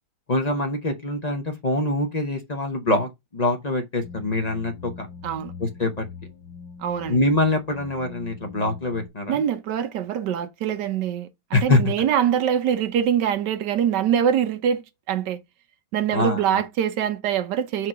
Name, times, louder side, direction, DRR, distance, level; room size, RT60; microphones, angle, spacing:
voice 1, 0.3-5.1 5.6-6.1 7.1-9.4 11.5-11.9 16.1-16.6, left 2 dB, 50° left, 0.5 m, -24 dB
sound 1, 4.0-9.1, left 5 dB, 90° left, 2.0 m, -42 dB
voice 2, 6.8-7.2 9.3-15.4 15.9-17.9, right 9 dB, 65° right, 1.3 m, -24 dB
4.7 x 4.6 x 6.0 m
omnidirectional pair, 2.2 m